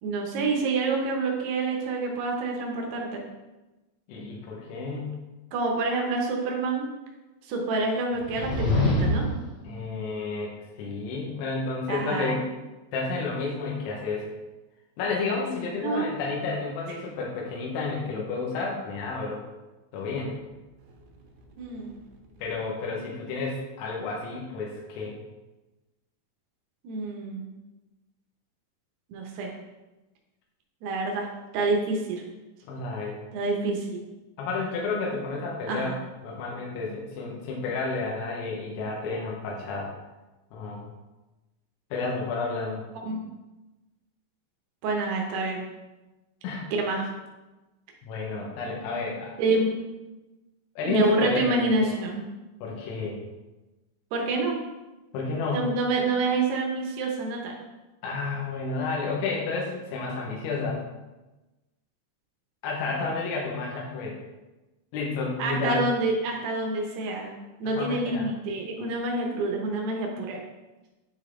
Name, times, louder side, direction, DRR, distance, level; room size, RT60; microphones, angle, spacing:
voice 1, 0.0-3.2 5.5-6.9 7.5-9.3 11.9-12.4 15.7-16.1 21.6-22.0 26.8-27.5 29.1-29.5 30.8-32.2 33.3-34.0 35.7-36.0 43.1-43.2 44.8-45.6 46.8-47.1 49.4-49.7 50.8-52.2 54.1-54.6 55.5-57.6 65.4-67.3 67.6-70.4, right 3 dB, 75° right, 0 dB, 2.6 m, -27 dB
voice 2, 4.1-5.2 9.6-12.4 12.9-14.3 15.0-19.4 19.9-20.3 22.4-25.2 32.6-33.2 34.4-35.9 36.2-39.9 40.5-40.9 41.9-42.8 46.4-46.7 48.0-49.3 50.8-51.9 52.6-53.2 55.1-55.6 58.0-60.8 62.6-64.2 64.9-65.8 67.8-68.3, left 3 dB, 80° left, -3 dB, 3.6 m, -31 dB
sound 1, 8.1-9.5, left 1 dB, 60° left, 3.3 m, -24 dB
9.6 x 4.0 x 3.7 m, 1.1 s
omnidirectional pair, 5.4 m